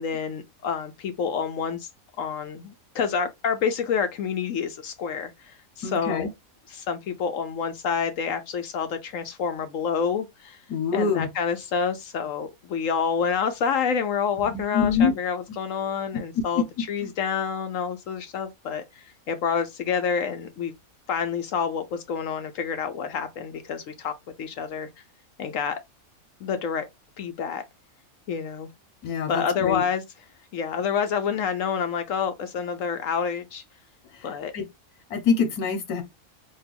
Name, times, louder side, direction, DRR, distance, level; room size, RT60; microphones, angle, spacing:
voice 1, 0.0-1.9 2.2-6.3 6.7-10.6 10.9-20.7 21.1-24.9 25.4-25.8 26.4-26.9 27.2-27.6 28.3-28.7 29.3-30.0 30.5-33.6 34.2-34.5, left 6 dB, 70° left, 0.9 m, -28 dB
voice 2, 5.8-6.3 10.7-11.3 14.4-15.1 16.5-16.6 29.0-29.8 34.5-34.6 35.1-36.0, left 6 dB, 85° left, 1.5 m, -25 dB
4.3 x 2.3 x 3.4 m
omnidirectional pair, 1.6 m